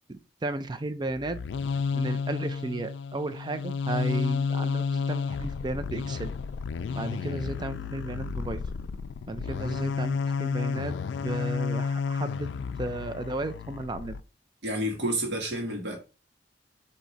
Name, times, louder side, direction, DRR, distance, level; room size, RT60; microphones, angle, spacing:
voice 1, 0.1-1.4 1.9-6.3 6.9-8.6 9.3-11.0 11.2-12.5 12.8-14.2, right 2 dB, 25° right, 0.4 m, -34 dB
sound 1, 1.1-14.2, left 5 dB, 85° left, 0.3 m, -31 dB
voice 2, 14.6-16.0, right 1 dB, 75° right, 1.4 m, -29 dB
4.6 x 2.8 x 4.0 m
head